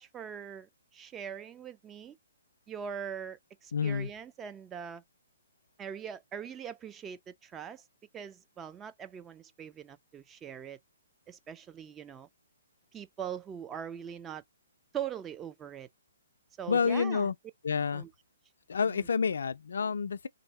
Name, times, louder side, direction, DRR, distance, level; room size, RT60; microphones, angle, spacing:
voice 1, 0.0-2.2 2.7-5.0 5.8-7.8 8.1-10.8 11.3-12.3 12.9-14.4 14.9-15.9 16.6-17.3 17.9-18.1 18.8-19.1, right 8 dB, 15° right, 0.3 m, -42 dB
voice 2, 3.7-4.1 16.7-17.3 17.6-18.0 18.7-20.3, left 6 dB, 70° left, 0.3 m, -29 dB
3.3 x 2.7 x 3.9 m
figure-of-eight pair, 135°, 0 cm